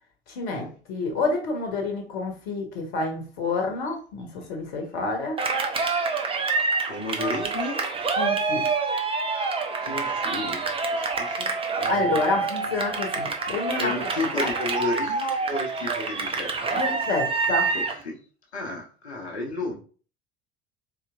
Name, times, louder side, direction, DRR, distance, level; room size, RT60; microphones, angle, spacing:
voice 1, 0.3-5.4 8.2-8.6 11.9-13.9 16.7-17.7, left 3 dB, 60° left, 1.0 m, -28 dB
Cheering, 5.4-18.0, right 4 dB, 15° right, 0.5 m, -27 dB
voice 2, 6.9-7.8 9.8-12.2 13.8-16.9 17.7-18.2 18.5-19.7, left 3 dB, 85° left, 0.8 m, -33 dB
4.0 x 2.9 x 2.4 m
figure-of-eight pair, 65°, 33 cm